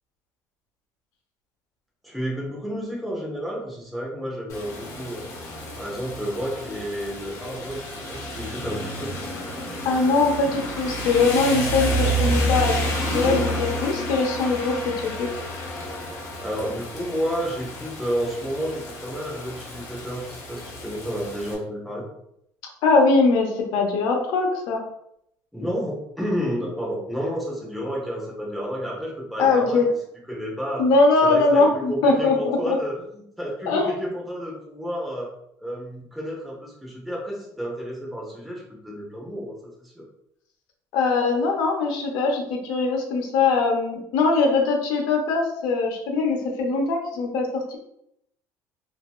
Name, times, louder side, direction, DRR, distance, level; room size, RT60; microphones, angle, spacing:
voice 1, 2.0-5.3 5.8-9.1 16.4-22.1 25.5-29.8 30.3-30.8 31.2-35.3 35.6-40.0, equal, ahead, -4 dB, 0.8 m, -31 dB
Rain, 4.5-21.5, equal, 45° left, 0.9 m, -30 dB
voice 2, 9.8-12.8 13.1-14.7 15.0-15.3 22.8-24.8 29.4-29.8 30.8-32.8 33.7-33.9 40.9-47.8, left 3 dB, 75° left, 1 dB, 0.7 m, -21 dB
2.9 x 2.7 x 2.2 m, 0.75 s
cardioid pair, 130°, 7 cm